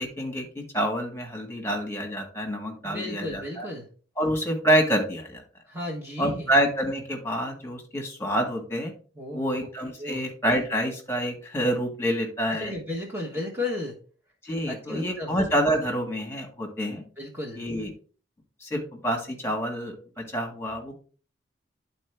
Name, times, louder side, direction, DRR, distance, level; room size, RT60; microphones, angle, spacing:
voice 1, 0.0-3.7 4.2-5.4 6.2-8.9 9.3-12.7 14.4-17.0 17.6-17.9 18.6-20.9, equal, 15° left, 2 dB, 1.7 m, -27 dB
voice 2, 2.8-3.9 5.7-6.5 9.2-9.6 10.0-10.2 12.5-14.0 14.7-15.4 17.2-17.6, left 2 dB, 15° right, -2 dB, 1.1 m, -34 dB
10.5 x 4.3 x 3.4 m, 0.40 s
head